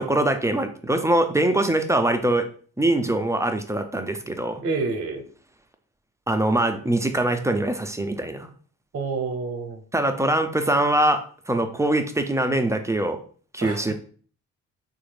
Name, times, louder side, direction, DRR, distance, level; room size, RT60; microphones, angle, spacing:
voice 1, 0.0-2.5 2.8-4.6 6.3-8.5 9.9-13.2 13.5-13.9, right 1 dB, 10° right, 7 dB, 0.5 m, -23 dB
voice 2, 4.6-5.2 8.9-9.8 13.6-13.9, right 4 dB, 40° right, 4 dB, 0.8 m, -28 dB
3.2 x 2.4 x 3.2 m, 0.43 s
hypercardioid pair, 45°, 36 cm